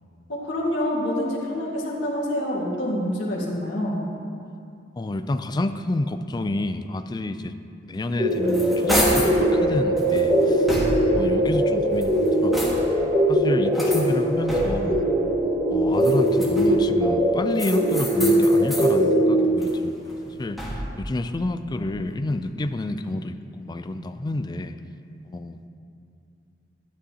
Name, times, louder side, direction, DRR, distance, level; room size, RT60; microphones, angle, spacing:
voice 1, 0.3-4.0, left 1 dB, 80° left, -5 dB, 1.8 m, -26 dB
voice 2, 5.0-7.5 7.8-10.7 11.1-12.8 13.3-15.1 15.7-24.7 25.2-25.6, left 2 dB, 25° left, 10 dB, 0.3 m, -29 dB
sound 1, 8.1-9.4 10.0-11.3 11.8-13.1 13.7-15.0 15.9-16.9 17.6-19.0 19.4-21.0, equal, ahead, 1.4 m, -30 dB
sound 2, 8.2-19.5, right 1 dB, 30° right, 1.8 m, -21 dB
12.5 x 9.6 x 2.8 m, 2.5 s
head